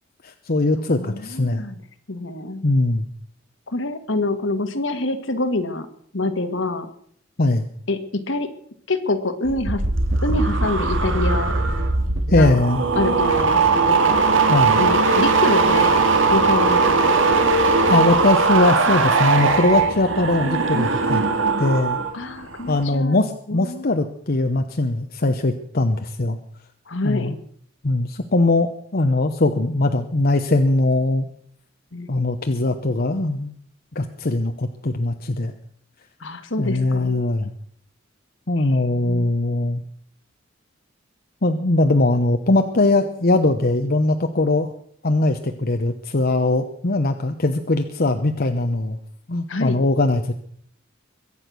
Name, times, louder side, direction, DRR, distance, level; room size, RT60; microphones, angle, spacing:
voice 1, 0.2-1.6 2.6-3.1 7.4-7.6 12.3-12.8 14.5-14.8 17.9-21.2 21.6-22.0 22.7-26.4 27.0-27.3 27.8-31.3 32.1-33.5 33.9-35.5 36.6-37.5 38.5-39.8 41.4-44.7 45.0-49.0 49.3-50.3, left 2 dB, 50° left, 6 dB, 1.0 m, -20 dB
voice 2, 0.7-1.8 2.1-2.6 3.7-5.9 6.1-6.9 7.9-8.5 8.9-9.9 10.2-11.5 12.3-12.6 12.9-14.2 14.8-15.9 16.2-17.5 22.1-23.9 26.9-27.3 31.9-32.1 36.2-37.1 38.6-39.3 49.5-49.8, left 2 dB, 70° left, 9 dB, 1.7 m, -26 dB
sound 1, 9.4-22.1 22.4-22.8, right 4 dB, 70° right, 2.3 m, -19 dB
22.5 x 8.8 x 6.2 m, 0.64 s
head